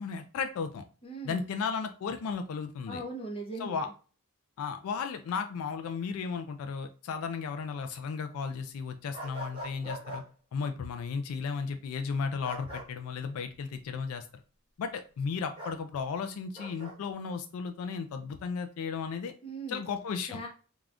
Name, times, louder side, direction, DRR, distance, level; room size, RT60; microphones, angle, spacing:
voice 1, 0.0-0.8 1.2-3.0 3.6-3.9 4.6-10.2 10.5-14.3 14.8-19.3 19.7-20.4, left 5 dB, 75° left, 7 dB, 0.3 m, -34 dB
voice 2, 1.0-1.5 2.9-3.9 19.4-19.8 20.3-20.5, right 2 dB, 25° left, 0 dB, 0.6 m, -39 dB
sound 1, 9.1-10.2 12.4-12.9 15.6-15.8 16.5-16.9, equal, 25° right, 1.0 m, -41 dB
3.4 x 2.3 x 2.4 m, 0.37 s
head